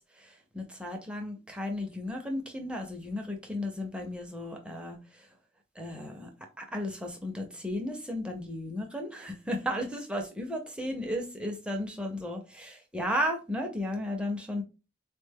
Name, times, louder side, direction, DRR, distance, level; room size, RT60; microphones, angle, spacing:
voice 1, 0.2-5.0 5.8-6.3 6.6-14.6, left 1 dB, 5° right, 0.5 m, -34 dB
3.8 x 2.1 x 3.4 m
head